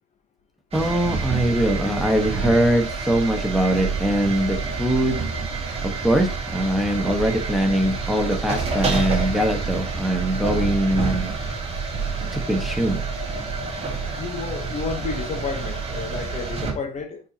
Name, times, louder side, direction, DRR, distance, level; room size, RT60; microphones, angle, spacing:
voice 1, 0.7-5.2 5.8-11.4 12.3-13.0, right 1 dB, ahead, 1.3 m, -22 dB
sound 1, 0.7-16.7, right 4 dB, 35° right, 2.2 m, -28 dB
voice 2, 14.2-17.2, left 5 dB, 40° left, 1.1 m, -31 dB
9.6 x 4.7 x 2.9 m
cardioid pair, 110°, 18 cm